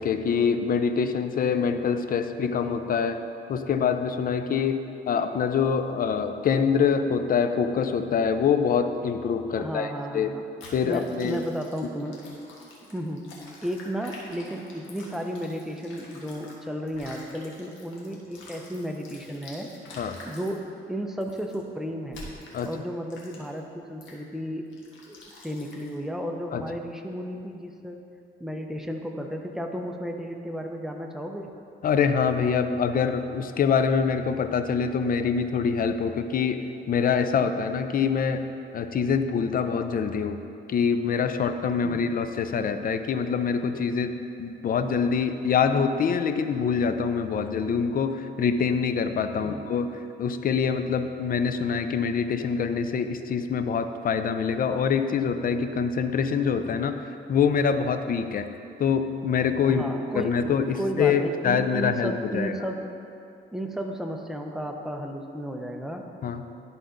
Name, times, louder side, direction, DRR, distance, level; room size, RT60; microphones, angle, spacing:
voice 1, 0.0-3.2 3.5-10.4 10.7-11.4 20.0-20.2 22.5-22.7 26.5-26.6 31.8-38.5 38.7-40.4 40.7-57.0 57.3-58.5 58.8-59.8 60.1-62.5 66.2-66.4, left 6 dB, 45° left, 9 dB, 0.5 m, -25 dB
voice 2, 9.6-10.4 10.8-12.2 12.8-13.3 13.6-19.7 20.2-22.2 22.6-24.7 25.1-28.0 28.4-31.5 41.8-42.2 49.4-49.7 59.7-60.4 60.8-62.9 63.5-66.1, equal, ahead, 3 dB, 0.7 m, -33 dB
sound 1, 10.6-16.6 16.9-20.6 21.2-21.6 22.1-22.7 23.1-23.6 24.0-24.2 24.7-26.0, left 2 dB, 75° left, 1.4 m, -47 dB
11.5 x 4.0 x 3.8 m, 2.6 s
cardioid pair, 90°, 20 cm